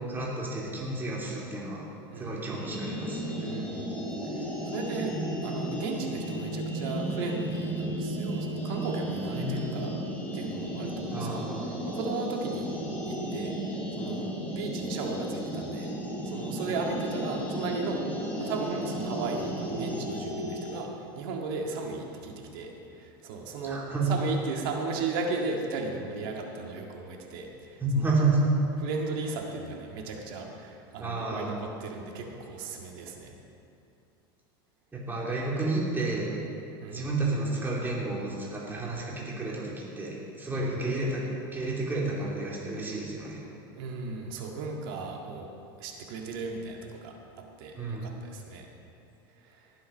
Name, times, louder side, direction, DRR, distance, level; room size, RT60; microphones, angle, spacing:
voice 1, 0.1-1.9 2.2-3.2 9.3-9.9 11.1-11.7 23.7-24.1 27.8-28.4 31.0-31.5 34.9-36.3 36.9-41.2 41.5-43.4 47.7-48.1, right 3 dB, 15° right, -5 dB, 3.0 m, -31 dB
sound 1, 2.6-20.8, equal, 15° left, 3.7 m, -34 dB
voice 2, 3.4-3.9 4.3-5.1 5.4-9.9 10.3-11.5 11.9-12.7 13.1-15.9 16.2-18.0 18.4-20.9 21.1-23.8 24.1-27.8 28.8-33.4 36.8-37.1 40.5-40.7 43.7-45.5 45.8-48.7 49.4-49.7, right 4 dB, 70° right, 1 dB, 1.9 m, -36 dB
18.5 x 7.8 x 5.3 m, 2.7 s
supercardioid pair, 115°, 12 cm